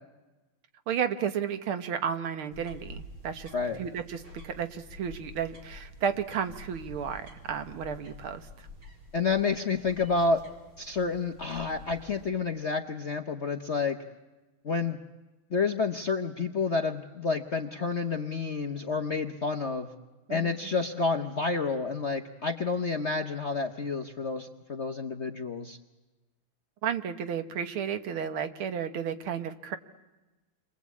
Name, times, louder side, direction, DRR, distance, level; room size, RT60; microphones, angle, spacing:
voice 1, 0.9-3.5 3.8-8.7 20.3-20.7 26.8-29.8, right 8 dB, 75° right, 9 dB, 2.1 m, -33 dB
sound 1, 2.5-12.3, left 1 dB, 40° right, 4.2 m, -48 dB
voice 2, 9.1-10.4 10.8-14.0 14.6-15.0 15.5-19.9 20.3-25.8, left 4 dB, 45° left, 5 dB, 0.9 m, -29 dB
29.5 x 23.0 x 8.4 m, 1.1 s
omnidirectional pair, 2.4 m